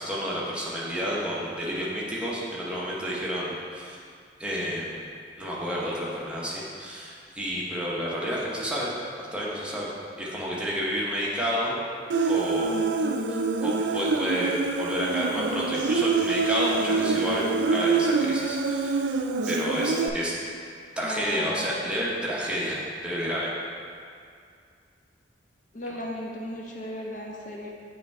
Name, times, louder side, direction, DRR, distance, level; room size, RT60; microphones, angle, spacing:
voice 1, 0.0-4.0 4.4-5.1 5.4-8.9 9.2-11.7 12.3-12.7 13.0-19.0 19.5-20.3 21.0-23.5, equal, 5° right, -6 dB, 0.8 m, -30 dB
Human voice, 12.1-20.1, right 4 dB, 70° right, 0.3 m, -26 dB
voice 2, 21.0-21.7 25.7-27.7, left 1 dB, 40° left, -1 dB, 0.6 m, -36 dB
8.0 x 3.2 x 4.6 m, 2.3 s
head